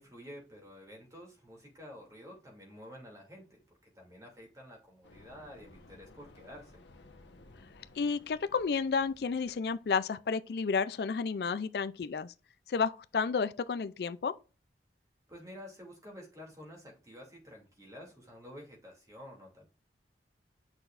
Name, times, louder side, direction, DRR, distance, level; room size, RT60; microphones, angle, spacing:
voice 1, 0.0-6.8 15.3-19.7, equal, 20° right, 2.6 m, -50 dB
sound 1, 5.0-10.2, left 2 dB, 85° left, 1.1 m, -57 dB
voice 2, 8.0-12.3 12.7-14.4, left 5 dB, 60° left, 0.4 m, -31 dB
8.8 x 6.1 x 2.5 m
head